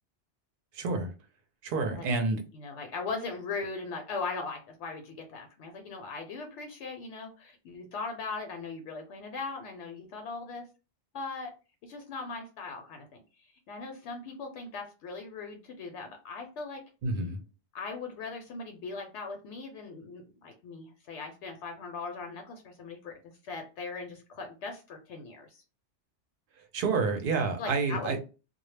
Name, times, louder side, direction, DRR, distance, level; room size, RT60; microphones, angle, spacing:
voice 1, 0.7-1.1 1.6-2.4 17.0-17.4 26.7-28.2, right 3 dB, 55° right, 5 dB, 0.7 m, -29 dB
voice 2, 2.5-10.6 11.1-11.5 11.8-13.2 13.7-16.8 17.7-25.6 27.6-28.2, left 4 dB, 75° left, 4 dB, 0.9 m, -39 dB
2.1 x 2.0 x 3.1 m, 0.31 s
omnidirectional pair, 1.2 m